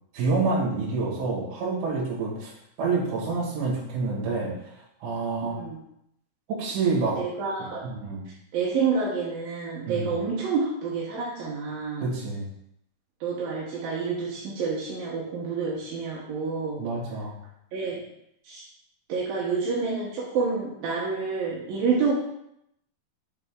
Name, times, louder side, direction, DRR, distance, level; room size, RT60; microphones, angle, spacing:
voice 1, 0.1-2.5 2.8-5.6 6.5-7.2 7.6-8.3 9.8-10.1 12.0-12.5 16.8-17.4, right 3 dB, 55° right, -5 dB, 2.6 m, -28 dB
voice 2, 5.4-5.8 7.2-7.9 8.5-12.1 13.2-16.8 17.7-18.0 18.4-18.6 19.1-22.1, right 5 dB, 85° right, -5 dB, 2.0 m, -28 dB
6.7 x 4.0 x 3.6 m, 0.76 s
omnidirectional pair, 5.7 m